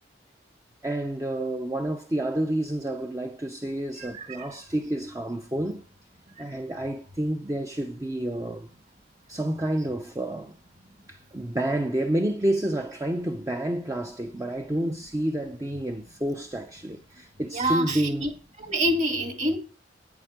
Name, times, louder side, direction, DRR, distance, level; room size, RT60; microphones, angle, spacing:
voice 1, 0.8-5.8 6.4-8.7 9.3-10.6 11.1-18.3, right 1 dB, 15° right, 0.7 m, -29 dB
voice 2, 17.5-18.3 18.6-19.6, right 1 dB, 40° right, 2.0 m, -26 dB
9.7 x 9.3 x 5.0 m
head